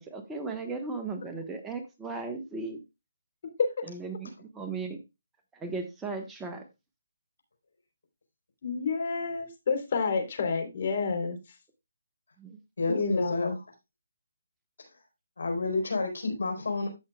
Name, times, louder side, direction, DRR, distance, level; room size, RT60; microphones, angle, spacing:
voice 1, 0.1-2.8 3.9-5.0 5.5-6.6 12.4-12.5, right 3 dB, 10° right, 4 dB, 1.2 m, -36 dB
voice 2, 8.6-11.4 12.9-13.6, left 4 dB, 45° left, 5 dB, 3.5 m, -29 dB
voice 3, 12.8-13.5 15.4-16.9, left 3 dB, 75° left, 5 dB, 4.4 m, -29 dB
15.0 x 6.3 x 2.3 m, 0.24 s
hypercardioid pair, 155°, 0 cm